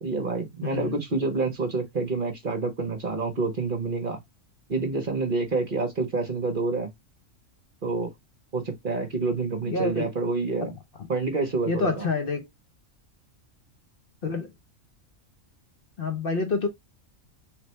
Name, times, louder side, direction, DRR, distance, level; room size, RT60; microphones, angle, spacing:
voice 1, 0.0-4.2 4.7-6.9 7.8-8.1 8.5-10.7 11.1-12.1, right 3 dB, 45° right, 1.0 m, -28 dB
voice 2, 0.6-1.0 9.7-10.1 10.6-11.1 11.6-12.5 14.2-14.5 16.0-16.7, left 3 dB, 50° left, 1.0 m, -28 dB
4.1 x 3.4 x 3.2 m
omnidirectional pair, 1.4 m